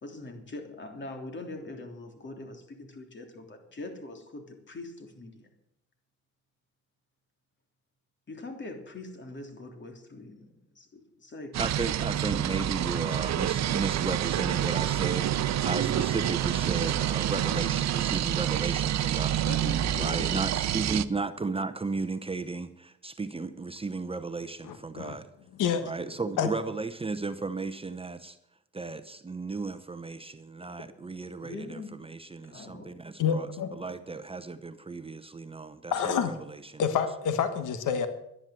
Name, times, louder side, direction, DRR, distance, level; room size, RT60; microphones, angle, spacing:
voice 1, 0.0-5.5 8.3-11.6 19.4-20.5 31.4-32.0 32.4-33.0, left 2 dB, 40° left, 4 dB, 3.2 m, -42 dB
sound 1, 11.5-21.0, right 11 dB, 60° right, 0.7 m, -28 dB
voice 2, 11.6-19.4 20.0-25.3 25.8-28.4 28.7-33.5 33.8-36.8, right 3 dB, 20° right, 11 dB, 0.9 m, -34 dB
voice 3, 24.6-25.2 25.6-25.8 26.4-26.5 33.2-33.7 35.9-36.3 36.8-38.1, left 7 dB, 85° left, 9 dB, 1.4 m, -28 dB
12.0 x 10.5 x 7.7 m, 0.79 s
cardioid pair, 90°, 30 cm